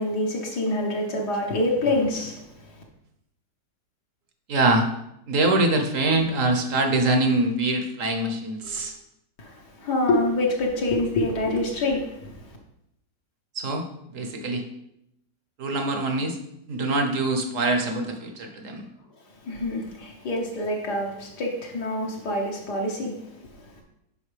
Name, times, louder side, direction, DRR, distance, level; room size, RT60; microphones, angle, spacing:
voice 1, 0.0-2.4 9.4-12.3 19.4-23.2, left 2 dB, 70° left, -1 dB, 1.7 m, -26 dB
voice 2, 4.5-4.9 5.3-8.9 13.5-13.8 14.1-14.6 15.6-16.4 16.7-18.9, right 2 dB, 55° right, 5 dB, 1.1 m, -24 dB
11.0 x 5.1 x 3.3 m, 0.81 s
omnidirectional pair, 1.9 m